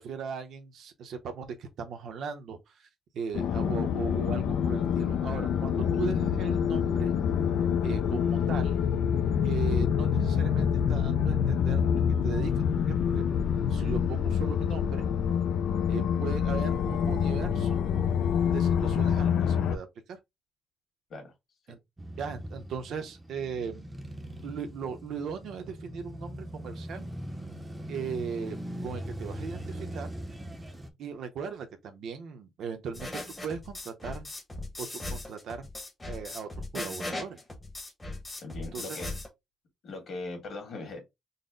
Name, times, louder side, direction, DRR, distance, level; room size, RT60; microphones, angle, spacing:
voice 1, 0.0-2.9 3.1-7.1 7.8-8.8 9.4-11.8 12.2-13.2 13.7-15.0 15.9-17.8 18.5-20.2 21.7-21.8 22.2-23.8 24.4-27.1 27.9-28.6 28.8-30.1 31.0-33.1 33.4-34.3 34.8-35.7 36.1-37.4 38.7-39.0, right 6 dB, 65° right, 0.7 m, -38 dB
sound 1, 3.3-19.8, left 7 dB, 75° left, 0.3 m, -26 dB
Male speech man speaking / Motorcycle / Idling, 22.0-30.9, equal, 10° right, 0.6 m, -40 dB
sound 2, 32.9-39.3, left 2 dB, 15° left, 0.9 m, -38 dB
voice 2, 38.4-39.1 39.8-41.0, left 3 dB, 45° left, 1.7 m, -39 dB
4.0 x 2.0 x 3.6 m
cardioid pair, 180°, 0 cm